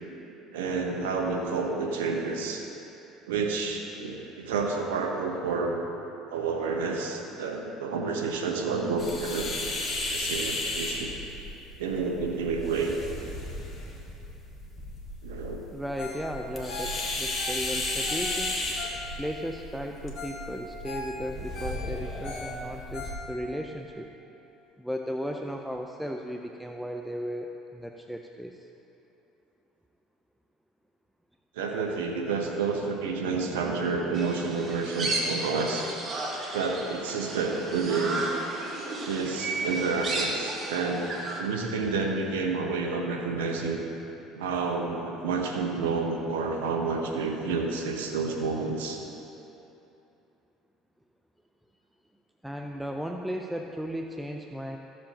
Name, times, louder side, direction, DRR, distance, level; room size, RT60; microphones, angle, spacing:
voice 1, 0.5-2.6 3.3-5.8 6.3-9.6 10.1-11.1 11.8-13.0 15.2-15.6 31.5-35.9 36.5-38.3 39.1-41.1 41.4-43.8 44.3-49.0, right 4 dB, 85° right, 2 dB, 0.9 m, -29 dB
sound 1, 9.0-23.1, left 2 dB, 30° left, 1.9 m, -35 dB
voice 2, 15.7-18.6 19.2-24.1 24.8-28.6 52.4-54.8, equal, 5° right, 3 dB, 0.5 m, -35 dB
Ringtone, 16.0-16.3 16.5-19.4 19.9-20.0 20.2-20.4 20.7-23.6 24.0-24.1, left 3 dB, 65° left, 2.3 m, -40 dB
sound 2, 34.1-41.4, right 2 dB, 40° right, 1.5 m, -33 dB
14.0 x 7.7 x 2.9 m, 2.9 s
hypercardioid pair, 75°, 0 cm